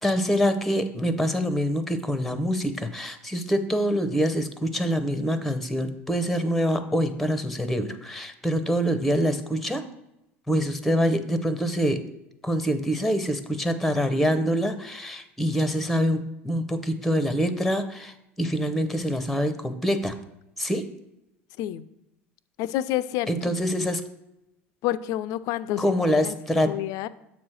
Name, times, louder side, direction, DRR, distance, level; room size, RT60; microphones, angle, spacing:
voice 1, 0.0-9.8 10.5-12.0 12.4-20.1 20.6-20.9 23.3-24.0 25.8-26.7, equal, ahead, 10 dB, 0.7 m, -25 dB
voice 2, 22.6-23.5 24.8-26.4 26.7-27.1, left 13 dB, 60° left, 15 dB, 0.4 m, -29 dB
7.3 x 3.1 x 6.1 m, 0.89 s
hypercardioid pair, 80°, 7 cm